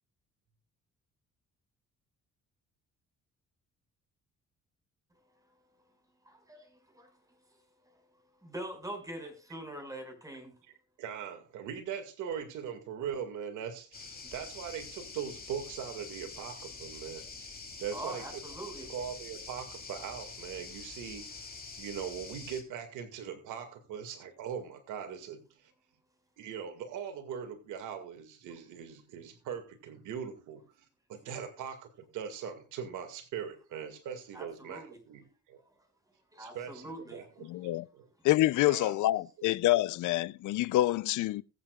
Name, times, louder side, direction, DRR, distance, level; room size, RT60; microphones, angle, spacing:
voice 1, 6.3-7.1 8.4-10.6 17.9-18.9 34.3-35.0 36.3-37.3, right 1 dB, 10° right, 5.5 m, -43 dB
voice 2, 11.0-17.3 17.8-18.4 18.9-21.4 21.8-25.4 26.4-30.6 31.1-35.6 36.4-37.5 37.9-38.1 38.7-39.0, right 7 dB, 90° right, 2.1 m, -40 dB
sound 1, 13.9-22.6, left 4 dB, 30° left, 3.2 m, -46 dB
voice 3, 37.4-37.9 38.2-41.4, left 15 dB, 80° left, 0.5 m, -27 dB
21.0 x 8.6 x 2.4 m
cardioid pair, 90°, 30 cm